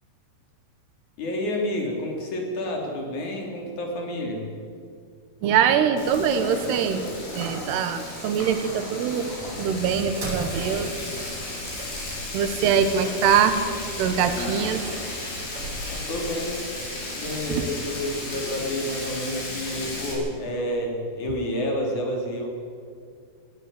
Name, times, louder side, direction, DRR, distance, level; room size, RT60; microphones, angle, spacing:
voice 1, 1.2-4.5 15.9-16.6 17.1-22.5, left 1 dB, 50° left, 1 dB, 4.4 m, -29 dB
voice 2, 5.4-7.0 7.3-10.9 12.3-13.6 14.0-14.8 17.5-17.7, right 7 dB, 80° right, 8 dB, 3.4 m, -23 dB
Frying (food), 6.0-20.1, left 2 dB, 80° left, 8.0 m, -34 dB
sound 1, 9.2-16.4, right 1 dB, 35° right, 8.2 m, -39 dB
18.5 x 17.0 x 9.6 m, 2.2 s
omnidirectional pair, 4.8 m